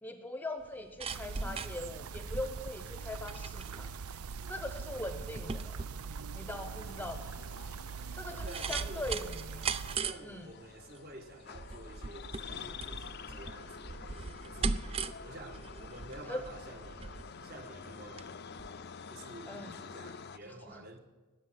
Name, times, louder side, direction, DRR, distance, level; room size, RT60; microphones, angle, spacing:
voice 1, 0.0-3.9 4.5-5.8 6.3-7.3 8.2-9.8 10.2-10.5 16.3-16.4 19.5-19.7 20.5-20.8, left 1 dB, 10° left, 7 dB, 0.9 m, -41 dB
sound 1, 0.6-18.3 18.6-18.7, right 4 dB, 25° right, 0.4 m, -40 dB
sound 2, 1.1-10.0, right 6 dB, 85° right, 0.6 m, -43 dB
voice 2, 1.4-2.0 8.4-9.1 9.8-14.8 15.2-18.3 19.1-21.0, right 1 dB, 45° right, 4 dB, 1.6 m, -50 dB
sound 3, 6.6-20.4, left 6 dB, 50° left, 0.6 m, -48 dB
18.5 x 7.6 x 9.8 m, 1.3 s
head